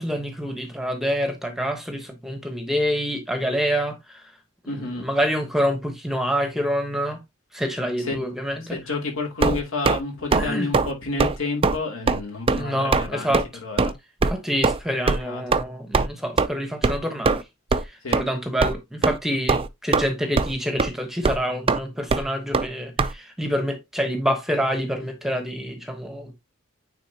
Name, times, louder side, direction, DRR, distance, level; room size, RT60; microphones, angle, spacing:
voice 1, 0.0-4.3 4.6-7.2 7.5-8.8 10.3-10.7 12.6-13.4 14.3-17.4 17.8-26.3, equal, ahead, 1.1 m, -27 dB
voice 2, 4.7-5.0 8.0-8.2 8.6-13.4 13.6-13.9 15.2-15.4 18.0-18.2, left 3 dB, 65° left, 2.5 m, -30 dB
sound 1, 9.4-10.0 10.3-10.5 10.7-10.9 11.2-11.4 11.6-11.8 12.1-12.2 12.5-12.6 12.9-13.1 13.3-13.4 13.8-13.9 14.2-14.3 14.6-14.8 15.1-15.2 15.5-15.6 15.9-16.1 16.4-16.5 16.8-17.0 17.2-17.4 17.7-17.8 18.1-18.2 18.6-18.7 19.0-19.2 19.5-20.1 20.4-20.5 20.8-20.9 21.2-21.4 21.7-21.8 22.1-22.2 22.5-22.7 23.0-23.1, right 4 dB, 25° right, 0.4 m, -20 dB
9.2 x 4.0 x 2.8 m
head